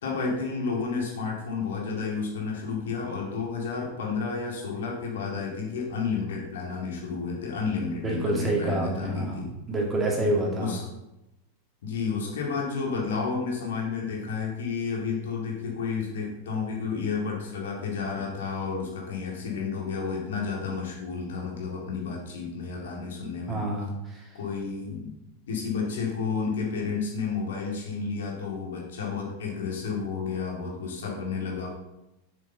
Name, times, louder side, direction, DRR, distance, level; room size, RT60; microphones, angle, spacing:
voice 1, 0.0-9.5 10.6-10.8 11.8-23.6 24.3-25.1 25.5-31.7, left 5 dB, 60° left, -1 dB, 2.1 m, -31 dB
voice 2, 8.0-9.4 9.7-10.8 23.5-24.2, right 1 dB, 15° right, -2 dB, 2.2 m, -27 dB
7.3 x 6.5 x 3.9 m, 0.93 s
figure-of-eight pair, 90°, 0 cm